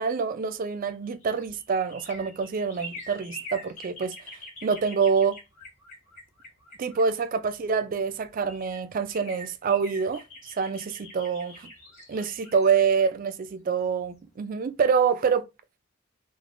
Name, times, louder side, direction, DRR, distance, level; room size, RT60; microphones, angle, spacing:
voice 1, 0.0-4.1 4.6-5.4 6.8-10.2 10.6-11.7 12.1-15.5, right 6 dB, 45° right, 0.3 m, -26 dB
sound 1, 0.8-7.6 8.2-8.3 8.5-14.3 14.6-14.7, equal, 35° left, 1.3 m, -45 dB
3.4 x 2.2 x 2.4 m
head